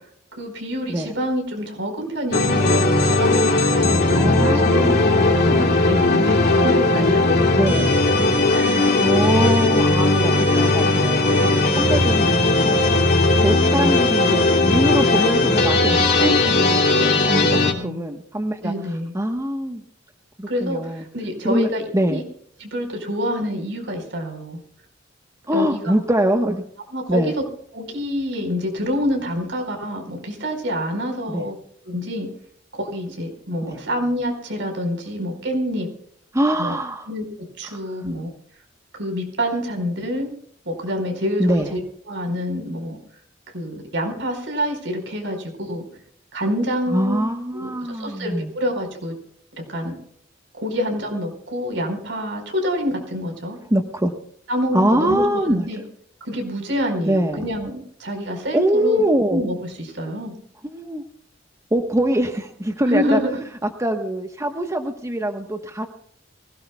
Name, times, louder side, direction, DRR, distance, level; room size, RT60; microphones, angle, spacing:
voice 1, 0.3-7.8 8.5-8.8 9.3-9.5 17.2-18.0 18.6-19.1 20.5-21.8 22.1-22.2 22.6-24.6 25.5-25.9 26.9-27.4 27.7-31.5 31.8-32.3 32.7-35.9 36.6-36.8 37.1-37.2 37.6-38.3 38.9-40.3 40.6-41.8 42.1-43.0 43.5-45.8 46.3-47.2 47.5-49.1 49.7-49.9 50.5-53.6 54.5-55.8 56.2-60.3 62.9-63.4, equal, 75° right, 3 dB, 4.8 m, -27 dB
sound 1, 2.3-17.7, left 2 dB, 60° left, 2.6 m, -18 dB
voice 2, 4.1-5.7 7.5-7.9 9.0-12.8 13.4-17.5 17.8-18.7 19.1-19.8 20.4-21.0 21.4-22.2 25.5-26.6 27.1-27.3 31.3-31.5 33.6-33.8 36.3-37.1 37.6-37.8 41.4-41.7 46.9-48.5 53.7-54.1 54.7-55.7 57.1-57.4 58.5-59.4 60.6-61.0 61.7-63.2 63.6-65.9, right 1 dB, 15° right, 5 dB, 1.2 m, -23 dB
24.0 x 17.5 x 2.3 m, 0.67 s
head